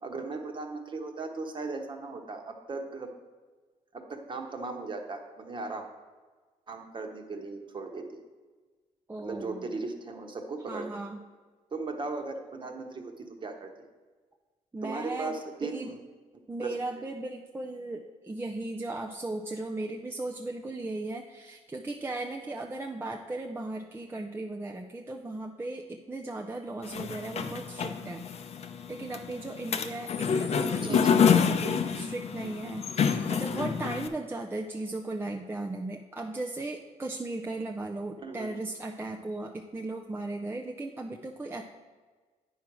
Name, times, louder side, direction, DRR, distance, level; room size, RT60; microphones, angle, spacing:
voice 1, 0.0-3.1 3.9-5.9 6.7-8.1 9.2-10.9 11.7-13.7 14.8-16.0 16.6-17.0 30.7-31.2 38.2-38.5, right 3 dB, 35° right, 4 dB, 1.3 m, -37 dB
voice 2, 9.1-9.7 10.7-11.2 14.7-15.9 16.5-28.3 28.9-41.6, right 2 dB, 15° right, 1 dB, 0.6 m, -37 dB
sound 1, 26.8-34.1, left 7 dB, 50° left, 0.7 m, -27 dB
9.1 x 4.9 x 6.0 m, 1.4 s
cardioid pair, 90°, 13 cm